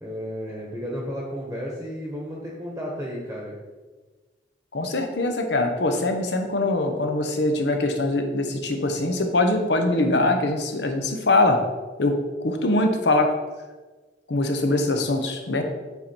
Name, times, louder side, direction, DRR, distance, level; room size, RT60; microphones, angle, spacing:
voice 1, 0.0-3.6, equal, 10° right, -3 dB, 1.1 m, -33 dB
voice 2, 4.7-11.6 12.0-12.2 12.4-13.3 14.3-15.6, left 2 dB, 80° left, 5 dB, 1.0 m, -22 dB
8.0 x 4.4 x 4.4 m, 1.3 s
head